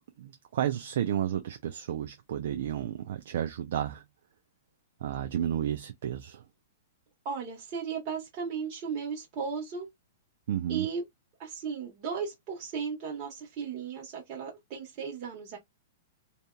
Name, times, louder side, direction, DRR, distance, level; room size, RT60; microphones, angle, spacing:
voice 1, 0.2-4.0 5.0-6.4 10.5-10.9, right 10 dB, 65° right, 0.4 m, -32 dB
voice 2, 7.2-9.9 10.7-11.0 11.4-15.6, right 6 dB, 40° right, 1.2 m, -35 dB
2.7 x 2.4 x 2.2 m
hypercardioid pair, 125°, 0 cm